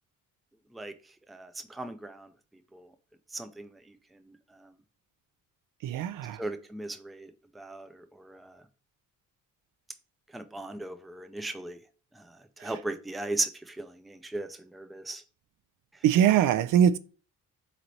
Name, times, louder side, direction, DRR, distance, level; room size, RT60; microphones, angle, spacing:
voice 1, 1.3-2.3 2.7-2.8 3.3-3.7 6.4-7.3 7.6-8.6 10.3-11.8 12.6-15.2, right 2 dB, ahead, 0.4 m, -37 dB
voice 2, 5.8-6.4 12.6-12.7 16.0-17.0, right 9 dB, 70° right, 0.5 m, -22 dB
4.0 x 3.1 x 4.0 m
cardioid pair, 100°, 33 cm